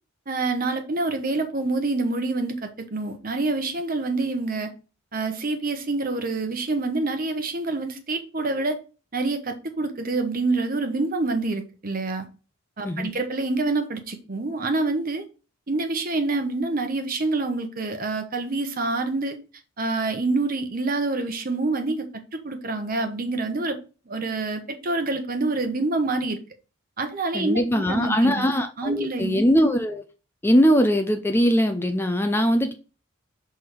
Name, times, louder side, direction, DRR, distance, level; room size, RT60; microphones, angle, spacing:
voice 1, 0.3-4.7 5.1-8.8 9.1-12.3 12.8-15.2 15.7-19.4 19.8-23.8 24.1-26.4 27.0-28.5 28.8-29.4, right 3 dB, 45° right, 0.9 m, -26 dB
voice 2, 27.3-30.0 30.4-32.7, equal, 10° left, 0.4 m, -21 dB
6.2 x 3.5 x 4.9 m
head